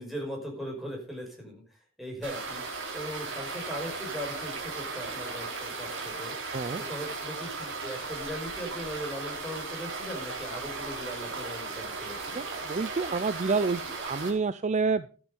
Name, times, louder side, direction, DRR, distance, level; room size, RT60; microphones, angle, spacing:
voice 1, 0.0-1.6 2.0-2.6 2.9-6.3 6.9-12.4, equal, ahead, -1 dB, 5.7 m, -39 dB
sound 1, 2.2-14.3, right 4 dB, 65° right, 4.1 m, -36 dB
voice 2, 12.4-15.2, right 4 dB, 35° right, 14 dB, 0.5 m, -29 dB
13.0 x 9.4 x 5.3 m, 0.38 s
head